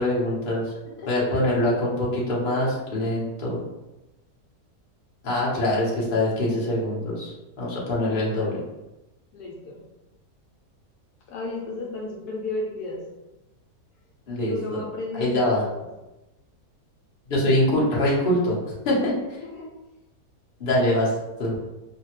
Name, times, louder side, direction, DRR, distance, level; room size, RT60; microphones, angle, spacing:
voice 1, 0.0-0.7 1.1-3.6 5.2-8.6 14.3-14.8 15.1-15.6 17.3-18.6 18.8-19.1 20.6-21.1 21.4-21.6, left 1 dB, 45° left, -6 dB, 0.8 m, -24 dB
voice 2, 0.8-1.6 9.3-9.8 11.3-13.0 14.4-15.9 19.4-19.7, left 2 dB, 75° left, -3 dB, 1.1 m, -34 dB
3.1 x 2.2 x 2.9 m, 1.0 s
omnidirectional pair, 1.8 m